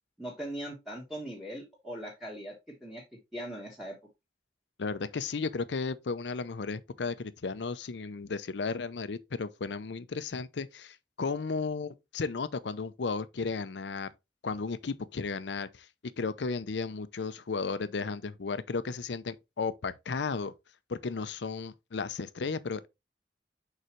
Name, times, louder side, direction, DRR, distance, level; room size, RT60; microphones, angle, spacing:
voice 1, 0.2-2.5 2.8-3.0 3.3-3.9, right 1 dB, ahead, 1.4 m, -40 dB
voice 2, 4.8-14.1 14.4-15.9 16.2-20.5 20.9-22.9, left 4 dB, 85° left, 0.6 m, -34 dB
6.7 x 4.9 x 3.1 m
head